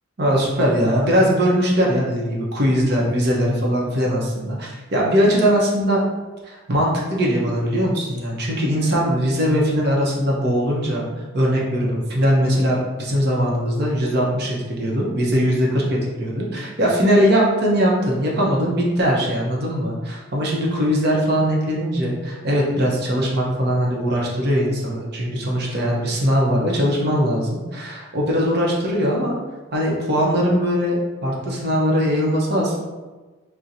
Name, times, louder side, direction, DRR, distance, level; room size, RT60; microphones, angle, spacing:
voice 1, 0.2-6.0 6.5-11.1 11.3-29.3 29.7-32.8, equal, 50° right, -3 dB, 0.7 m, -20 dB
4.2 x 2.1 x 2.5 m, 1.3 s
head